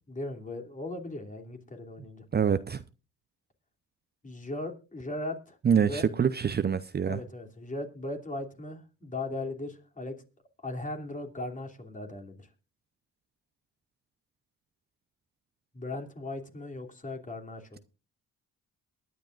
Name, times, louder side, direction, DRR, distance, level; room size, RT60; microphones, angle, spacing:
voice 1, 0.1-2.4 4.2-6.0 7.0-10.2 10.6-12.5 15.7-17.8, left 2 dB, 25° left, 2.8 m, -38 dB
voice 2, 2.3-2.8 5.6-7.2, right 7 dB, 35° right, 0.6 m, -25 dB
22.5 x 10.5 x 2.5 m
cardioid pair, 90°, 30 cm